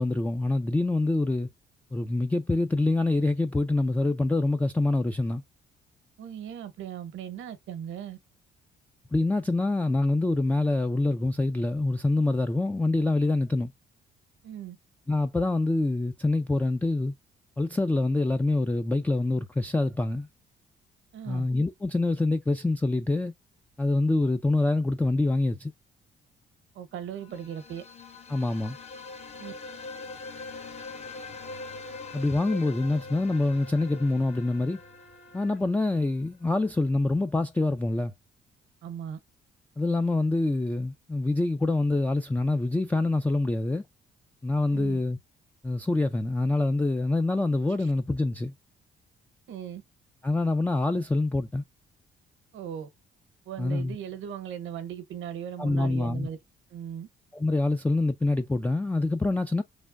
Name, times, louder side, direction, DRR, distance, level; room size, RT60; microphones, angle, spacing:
voice 1, 0.0-1.5 1.9-5.4 9.1-13.7 15.1-17.1 17.6-20.3 21.3-23.3 23.8-25.7 28.3-28.8 32.1-34.8 35.3-38.1 39.8-43.8 44.4-45.2 45.6-48.5 50.2-51.6 53.6-54.0 55.6-56.3 57.3-59.6, left 2 dB, 10° left, 0.3 m, -25 dB
voice 2, 6.2-8.2 14.4-14.8 21.1-21.5 26.7-27.8 29.4-29.5 38.8-39.2 44.7-45.0 47.8-47.9 49.5-49.8 52.5-52.9 53.5-56.4 56.7-57.1, right 9 dB, 85° right, 0.9 m, -38 dB
sound 1, 27.2-36.0, left 3 dB, 35° left, 0.7 m, -43 dB
sound 2, 30.0-35.6, left 2 dB, 65° left, 1.1 m, -56 dB
4.3 x 3.4 x 2.4 m
cardioid pair, 90°, 20 cm